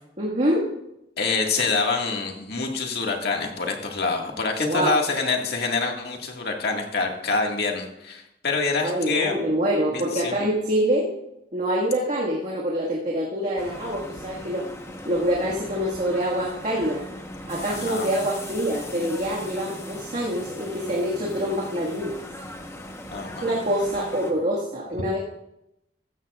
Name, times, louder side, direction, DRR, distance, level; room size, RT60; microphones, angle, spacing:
voice 1, 0.2-0.7 4.6-5.0 8.8-11.1 11.5-14.7 15.1-17.0 17.5-22.2 23.4-25.2, equal, 45° right, -4 dB, 1.8 m, -25 dB
voice 2, 1.2-9.4 9.9-10.4 17.7-18.1 23.1-23.5, left 4 dB, 60° left, 1 dB, 1.9 m, -26 dB
sound 1, 13.6-24.3, left 1 dB, 15° left, 1.0 m, -38 dB
15.0 x 13.0 x 2.4 m, 0.85 s
head